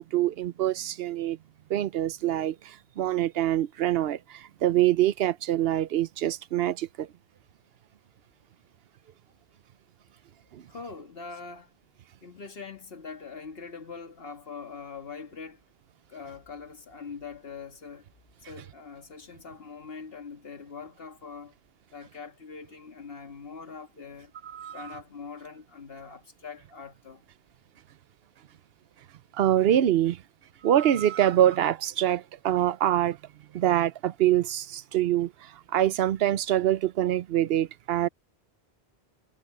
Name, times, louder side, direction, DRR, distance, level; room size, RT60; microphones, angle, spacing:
voice 1, 0.0-1.4 1.7-7.1 10.5-10.6 24.4-25.0 29.3-30.2 30.6-33.2 33.5-38.1, right 12 dB, 70° right, 0.9 m, -25 dB
voice 2, 10.7-11.7 12.2-15.6 16.1-18.1 18.4-21.5 21.9-24.3 24.7-27.2, left 5 dB, 65° left, 1.8 m, -43 dB
omnidirectional pair, 1.1 m